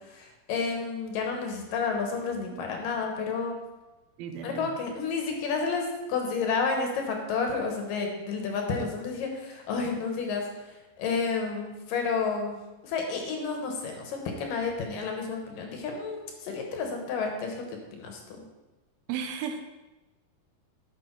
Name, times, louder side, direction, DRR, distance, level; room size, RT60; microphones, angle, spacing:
voice 1, 0.0-3.5 4.4-10.4 10.7-12.6 12.8-18.4, left 4 dB, 70° left, 2 dB, 2.7 m, -31 dB
voice 2, 4.2-4.7 19.1-19.7, right 7 dB, 85° right, 6 dB, 2.6 m, -35 dB
10.5 x 6.3 x 4.5 m, 1.1 s
omnidirectional pair, 4.3 m